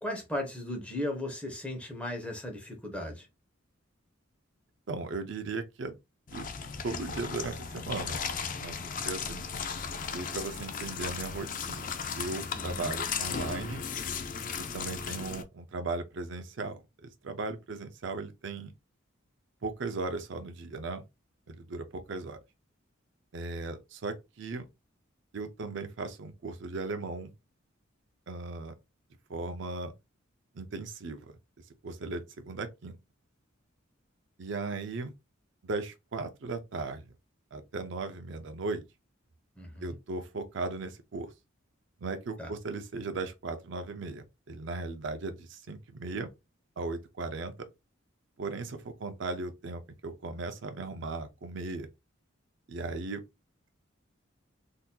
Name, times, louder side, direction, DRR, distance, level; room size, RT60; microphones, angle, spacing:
voice 1, 0.0-3.3 12.5-12.9 39.6-40.0 42.4-42.5, left 1 dB, 5° left, 0.9 m, -36 dB
voice 2, 4.9-5.9 6.3-6.5 6.8-8.2 8.6-8.7 9.0-9.5 10.1-13.8 14.7-18.7 19.6-21.0 21.5-22.4 23.3-24.7 25.3-27.3 28.3-28.7 29.3-29.9 30.5-31.3 31.8-33.0 34.4-35.1 35.6-37.0 37.5-38.8 39.8-41.3 42.0-46.3 46.8-47.7 48.4-51.9 52.7-53.2, right 3 dB, 60° right, 0.5 m, -37 dB
sound 1, 6.3-15.4, left 6 dB, 40° left, 0.4 m, -36 dB
3.9 x 2.7 x 2.2 m
head